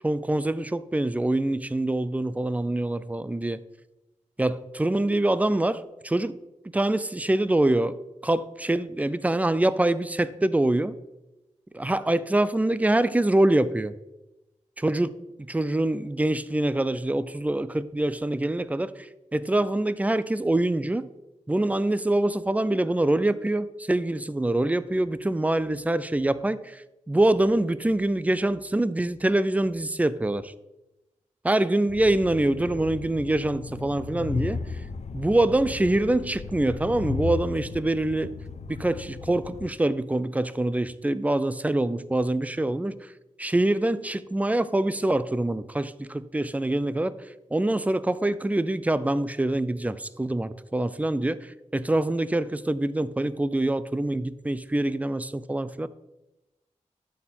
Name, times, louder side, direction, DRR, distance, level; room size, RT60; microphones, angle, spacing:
voice 1, 0.0-3.6 4.4-6.4 6.7-11.0 11.7-13.9 14.8-15.2 15.5-21.1 21.5-30.5 31.4-34.6 35.1-38.3 38.7-43.1 43.4-47.1 47.5-55.9, right 1 dB, 10° right, 0.4 m, -25 dB
Train, 31.9-39.7, left 4 dB, 60° left, 0.5 m, -35 dB
12.5 x 4.4 x 4.3 m
wide cardioid pair, 90°, 13 cm